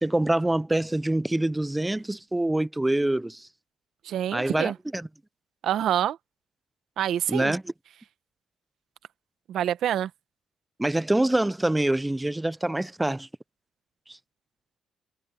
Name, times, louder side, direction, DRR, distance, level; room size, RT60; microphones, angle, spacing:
voice 1, 0.0-3.5 4.3-5.1 7.3-7.7 10.8-13.3 14.1-14.2, right 1 dB, 10° right, 0.6 m, -25 dB
voice 2, 4.0-4.7 5.6-6.2 7.0-7.5 9.5-10.1, right 11 dB, 75° right, 1.1 m, -26 dB
cardioid pair, 90°, 0 cm